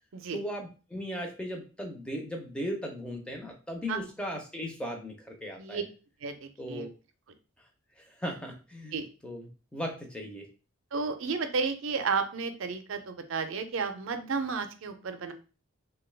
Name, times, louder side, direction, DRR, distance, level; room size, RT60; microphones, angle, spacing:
voice 1, 0.3-5.8 6.6-6.9 8.0-10.5, equal, 5° left, 2 dB, 0.5 m, -37 dB
voice 2, 6.2-6.9 8.9-9.1 10.9-15.3, right 5 dB, 65° right, 8 dB, 0.5 m, -32 dB
2.9 x 2.3 x 3.2 m, 0.34 s
head